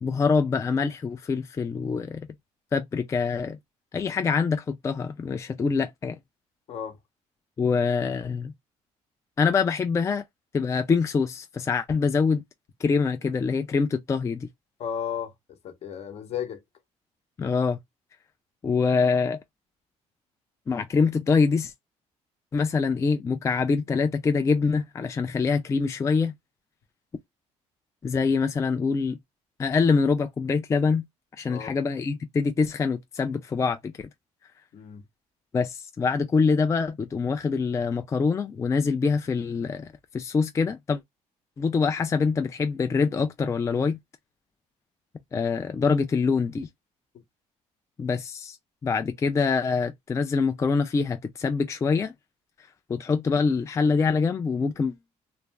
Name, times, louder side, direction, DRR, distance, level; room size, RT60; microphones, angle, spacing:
voice 1, 0.0-2.3 2.7-3.6 3.9-6.2 7.6-8.5 9.4-10.3 10.5-12.4 12.8-14.5 17.4-17.8 18.6-19.4 20.7-21.7 22.5-26.3 28.0-29.2 29.6-31.1 31.4-33.9 35.5-39.9 40.1-41.0 41.6-44.0 45.3-46.7 48.0-48.6 48.8-52.1 52.9-54.9, left 5 dB, 25° left, 0.3 m, -25 dB
voice 2, 14.8-16.6 31.5-31.7 34.7-35.0, left 8 dB, 55° left, 0.8 m, -34 dB
2.4 x 2.1 x 3.2 m
cardioid pair, 110°, 13 cm